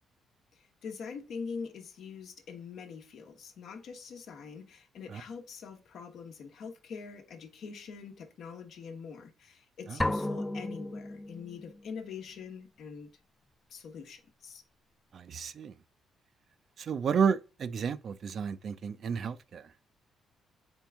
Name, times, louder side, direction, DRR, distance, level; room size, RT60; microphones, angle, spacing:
voice 1, 0.5-13.1 13.7-14.6, left 5 dB, 70° left, 1.0 m, -44 dB
sound 1, 10.0-11.8, left 1 dB, 10° left, 0.4 m, -33 dB
voice 2, 15.1-15.7 16.8-19.7, right 6 dB, 55° right, 0.4 m, -31 dB
4.5 x 3.4 x 3.5 m
cardioid pair, 90°, 0 cm